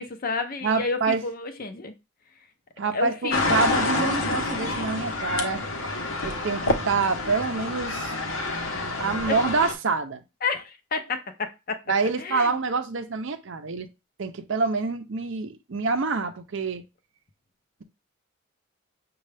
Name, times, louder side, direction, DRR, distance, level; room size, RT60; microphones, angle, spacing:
voice 1, 0.0-1.9 2.9-3.7 6.4-6.5 9.3-9.4 10.4-11.8 12.2-12.6, left 4 dB, 40° left, 0.5 m, -30 dB
voice 2, 0.6-1.2 2.8-5.6 6.2-8.1 9.0-10.2 11.9-13.9 14.2-16.8, right 4 dB, 60° right, 0.6 m, -26 dB
sound 1, 3.3-9.7, left 2 dB, 65° left, 0.9 m, -28 dB
6.4 x 2.3 x 3.3 m
head